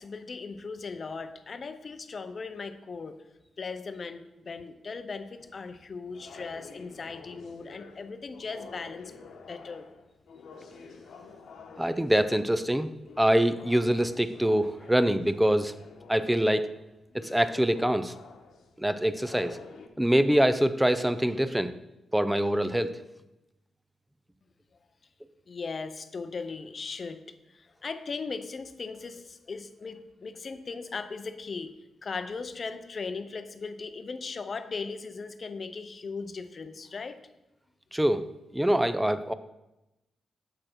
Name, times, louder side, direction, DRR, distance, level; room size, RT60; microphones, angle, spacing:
voice 1, 0.0-3.2 3.6-9.1 9.5-9.9 25.5-27.2 27.5-31.7 32.0-37.2, left 4 dB, 40° left, 10 dB, 0.6 m, -38 dB
sound 1, 5.4-19.9, left 4 dB, 85° left, 1.1 m, -49 dB
voice 2, 11.8-12.9 13.2-15.7 16.1-16.7 17.1-18.1 18.8-19.6 20.0-21.7 22.1-23.0 37.9-38.2 38.5-39.3, right 1 dB, 5° right, 12 dB, 0.4 m, -24 dB
7.7 x 6.5 x 4.5 m, 0.93 s
wide cardioid pair, 130°, 0 cm